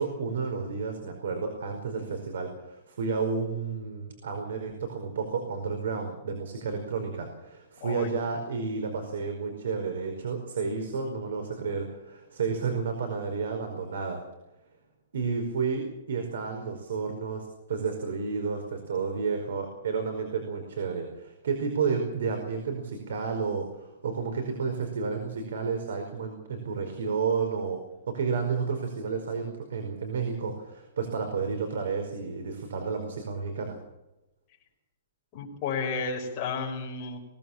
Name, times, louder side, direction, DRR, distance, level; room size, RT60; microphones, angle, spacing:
voice 1, 0.0-14.2 15.1-27.8 28.1-33.8, right 5 dB, 75° right, 5 dB, 4.9 m, -31 dB
voice 2, 35.3-37.2, left 5 dB, 25° left, -2 dB, 5.7 m, -32 dB
23.0 x 17.5 x 7.3 m, 0.96 s
hypercardioid pair, 175°, 0 cm